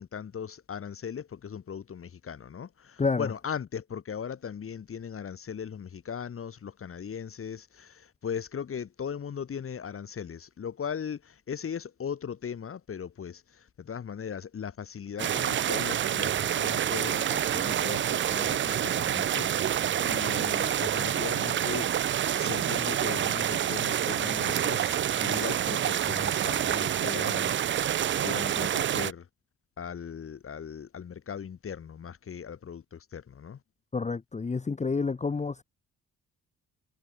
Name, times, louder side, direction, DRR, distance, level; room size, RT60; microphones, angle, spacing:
voice 1, 0.0-13.4 13.8-19.5 20.0-21.9 22.4-24.9 25.2-27.5 28.2-29.2 29.8-33.6, left 7 dB, 45° left, 2.5 m, -38 dB
voice 2, 3.0-3.3 33.9-35.6, left 4 dB, 25° left, 1.2 m, -29 dB
sound 1, 15.2-29.1, right 10 dB, 40° right, 0.5 m, -27 dB
cardioid pair, 90°, 30 cm